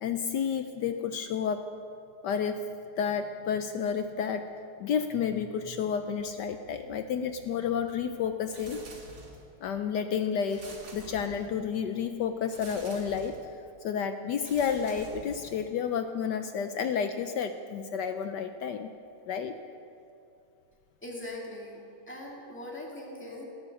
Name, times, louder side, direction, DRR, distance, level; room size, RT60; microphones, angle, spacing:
voice 1, 0.0-1.7 2.2-2.7 3.0-4.5 4.8-8.8 9.6-13.4 13.8-18.9 19.3-19.5, left 7 dB, 70° left, 8 dB, 1.1 m, -31 dB
sound 1, 8.5-9.6 10.5-11.7 12.5-13.5 14.4-15.7, right 2 dB, 50° right, 2.5 m, -48 dB
voice 2, 21.0-21.8 22.1-23.4, left 1 dB, 5° left, -2 dB, 2.0 m, -41 dB
17.0 x 9.7 x 6.6 m, 2.5 s
omnidirectional pair, 2.3 m